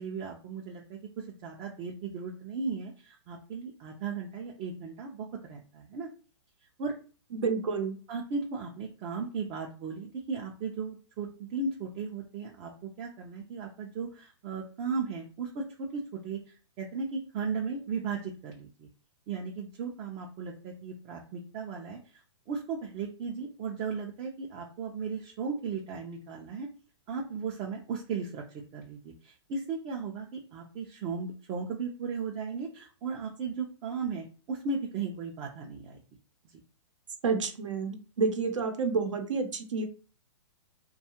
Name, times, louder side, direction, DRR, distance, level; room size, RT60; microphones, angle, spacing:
voice 1, 0.0-6.1 6.8-6.9 8.1-18.9 19.3-22.2 22.5-26.7 27.1-36.0 36.5-36.6, right 5 dB, 30° right, 0 dB, 0.4 m, -36 dB
voice 2, 7.3-7.9 37.2-39.8, right 4 dB, 80° right, 6 dB, 0.8 m, -29 dB
2.7 x 2.3 x 2.8 m, 0.38 s
hypercardioid pair, 135°, 16 cm